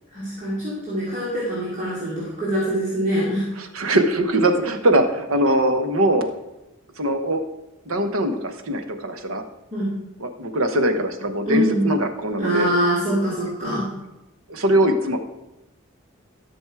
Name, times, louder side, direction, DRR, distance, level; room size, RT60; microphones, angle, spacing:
voice 1, 0.1-3.5 9.7-10.0 11.4-11.9 12.4-13.9, equal, 35° right, -9 dB, 2.8 m, -24 dB
voice 2, 3.6-6.3 7.0-7.4 7.9-9.4 10.2-12.7 14.5-15.2, right 1 dB, 85° right, 8 dB, 1.1 m, -21 dB
13.0 x 6.2 x 4.7 m, 0.96 s
head